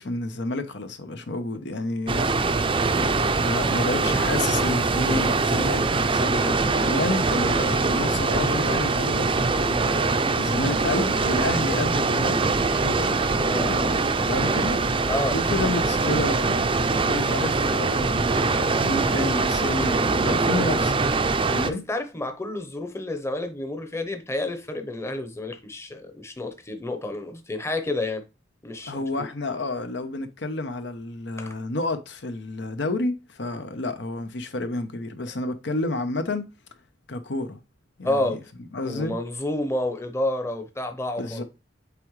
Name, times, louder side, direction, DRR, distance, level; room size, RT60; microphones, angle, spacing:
voice 1, 0.0-2.2 3.4-16.4 17.1-21.0 21.4-21.8 28.9-36.5 37.1-37.6 38.0-38.3 38.7-39.1 41.2-41.4, left 2 dB, 70° left, 0.8 m, -30 dB
Water, 2.1-21.7, right 3 dB, 30° right, 0.6 m, -23 dB
voice 2, 13.4-13.7 15.1-15.4 21.6-28.2 28.6-29.3 31.4-31.5 38.0-38.5 38.8-41.4, left 1 dB, 15° left, 0.9 m, -30 dB
8.3 x 3.6 x 3.2 m
head